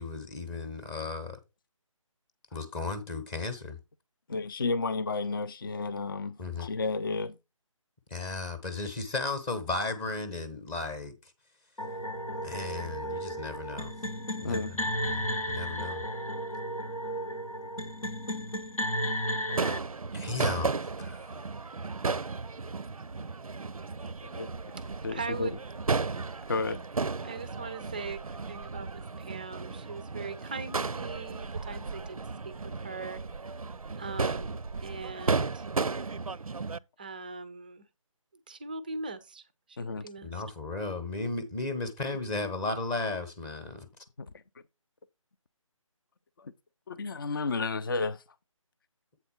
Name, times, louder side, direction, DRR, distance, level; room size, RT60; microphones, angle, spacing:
voice 1, 0.0-1.4 2.5-3.8 6.4-6.7 8.1-11.3 12.4-13.9 14.4-16.0 20.1-21.4 40.2-43.9, left 3 dB, 15° left, 0.8 m, -35 dB
voice 2, 4.3-7.4 14.4-14.7 24.2-24.5 25.0-25.5 26.5-26.8 39.8-40.1 44.2-44.4 46.4-46.5 46.9-48.2, left 3 dB, 40° left, 0.5 m, -32 dB
sound 1, 11.8-19.8, equal, 85° left, 1.0 m, -34 dB
Crowd / Fireworks, 19.5-36.8, right 4 dB, 85° right, 0.5 m, -34 dB
voice 3, 25.1-25.6 27.2-32.2 32.4-33.2 34.0-35.6 37.0-37.9 38.5-40.4, right 4 dB, 15° right, 0.4 m, -41 dB
8.1 x 4.1 x 5.6 m
figure-of-eight pair, 150°, 18 cm